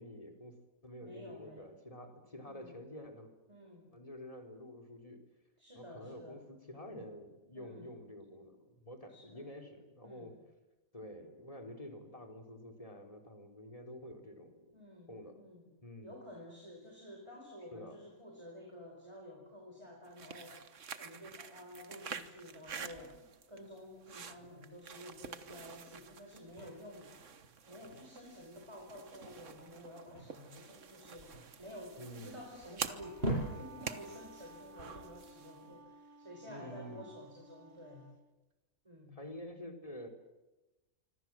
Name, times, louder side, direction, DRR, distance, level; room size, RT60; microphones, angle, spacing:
voice 1, 0.0-3.3 3.9-5.2 5.7-10.3 10.9-14.8 15.1-15.4 15.8-16.2 17.7-18.0 22.6-23.2 32.0-32.4 36.4-37.1 39.1-40.1, left 1 dB, 25° left, 4 dB, 3.8 m, -49 dB
voice 2, 1.0-1.7 2.4-2.8 3.5-3.9 5.6-6.4 7.5-7.9 9.1-9.5 10.0-10.4 14.7-15.7 16.0-20.7 21.0-27.1 27.7-31.3 31.6-38.1 38.8-39.2, left 1 dB, 20° right, 0 dB, 5.1 m, -51 dB
sound 1, 20.0-35.6, right 6 dB, 60° right, 1.6 m, -48 dB
sound 2, 22.6-35.8, right 1 dB, 45° right, 7.6 m, -45 dB
Wind instrument woodwind instrument, 32.7-38.2, right 2 dB, 80° right, 2.0 m, -56 dB
26.0 x 25.5 x 7.6 m, 1.1 s
omnidirectional pair, 1.4 m